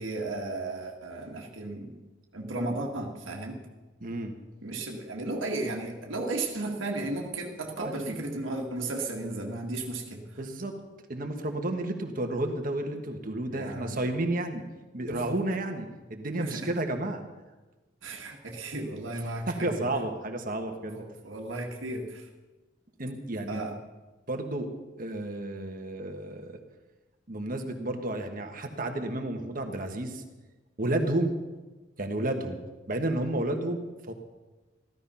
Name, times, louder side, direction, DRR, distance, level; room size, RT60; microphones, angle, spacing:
voice 1, 0.0-2.0 2.3-3.6 4.6-10.4 13.5-14.0 15.1-15.2 16.4-16.8 18.0-19.9 20.8-22.3 23.5-23.8, right 2 dB, 90° right, 0 dB, 1.7 m, -34 dB
voice 2, 4.0-4.3 7.8-8.2 10.4-10.7 11.1-14.6 14.9-17.2 19.5-21.0 23.0-23.6 24.3-24.7 25.0-26.6 27.3-30.2 30.8-31.3 32.0-32.6 32.9-34.1, right 1 dB, 45° right, 5 dB, 1.6 m, -31 dB
15.0 x 13.0 x 5.7 m, 1.2 s
head